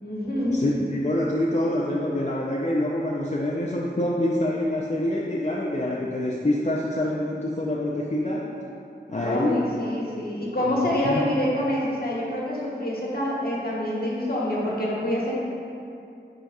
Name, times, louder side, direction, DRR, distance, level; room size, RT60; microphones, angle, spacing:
voice 1, 0.0-0.8 9.2-15.4, left 1 dB, 55° left, -6 dB, 1.3 m, -26 dB
voice 2, 0.5-8.5 9.1-9.7 10.6-10.7, left 1 dB, 40° left, -4 dB, 0.5 m, -26 dB
10.0 x 4.0 x 2.4 m, 2.6 s
wide cardioid pair, 45°, 18 cm